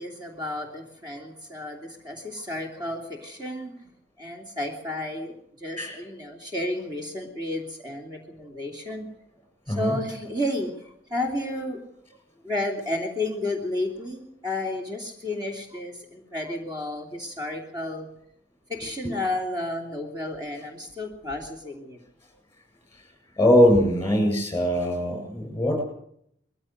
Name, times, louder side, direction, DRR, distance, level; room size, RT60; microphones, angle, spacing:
voice 1, 0.0-3.7 4.2-5.3 5.6-9.1 9.7-11.8 12.4-18.1 18.7-22.0, left 1 dB, 20° right, 1 dB, 2.9 m, -32 dB
voice 2, 23.4-25.8, equal, 15° left, 4 dB, 7.7 m, -21 dB
21.5 x 15.5 x 7.9 m, 0.71 s
head